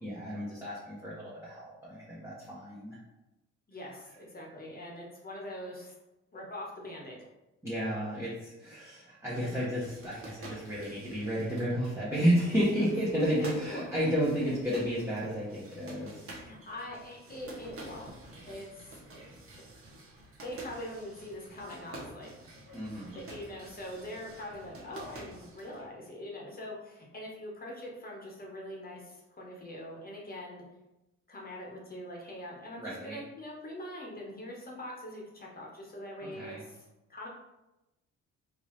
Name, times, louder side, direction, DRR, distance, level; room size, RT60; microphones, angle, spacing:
voice 1, 0.0-3.0 7.6-16.2 22.7-23.2 32.8-33.2 36.2-36.6, equal, 10° right, -8 dB, 1.0 m, -32 dB
voice 2, 3.7-5.9 6.3-7.3 9.3-9.7 12.7-14.5 16.4-18.1 18.4-19.2 19.6-19.7 20.4-22.3 23.1-30.6 31.3-37.3, left 1 dB, 30° left, -2 dB, 1.1 m, -43 dB
sound 1, 9.3-25.9, right 1 dB, 50° right, 1.0 m, -49 dB
3.6 x 2.8 x 3.1 m, 0.99 s
cardioid pair, 90°, 30 cm